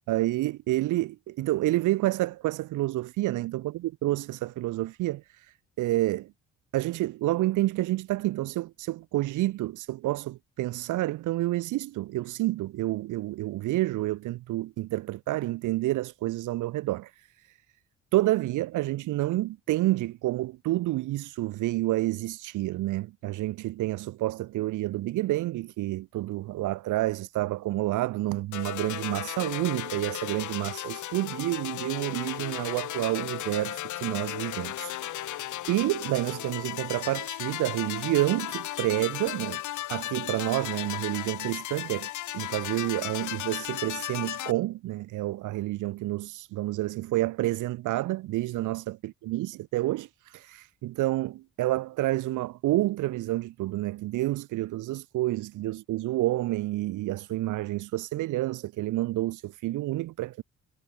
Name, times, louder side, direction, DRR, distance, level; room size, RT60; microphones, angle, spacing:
voice 1, 0.1-6.3 6.7-17.5 18.1-39.6 39.9-42.1 42.3-60.4, right 17 dB, 80° right, 0.8 m, -29 dB
sound 1, 28.5-44.5, left 14 dB, 75° left, 1.3 m, -35 dB
cardioid pair, 90°, 30 cm